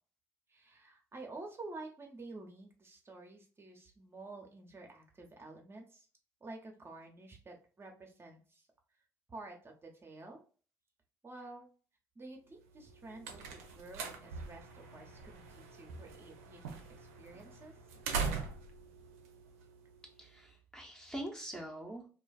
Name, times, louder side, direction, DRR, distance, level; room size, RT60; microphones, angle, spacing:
voice 1, 0.5-6.1 6.4-8.7 9.3-10.4 11.2-11.7 12.2-17.7, right 2 dB, 30° right, 1 dB, 0.7 m, -50 dB
sound 1, 12.7-20.2, right 5 dB, 80° right, 0.4 m, -42 dB
voice 2, 20.2-22.1, right 1 dB, 5° left, 1 dB, 0.8 m, -44 dB
2.3 x 2.3 x 2.3 m, 0.39 s
hypercardioid pair, 50°, 8 cm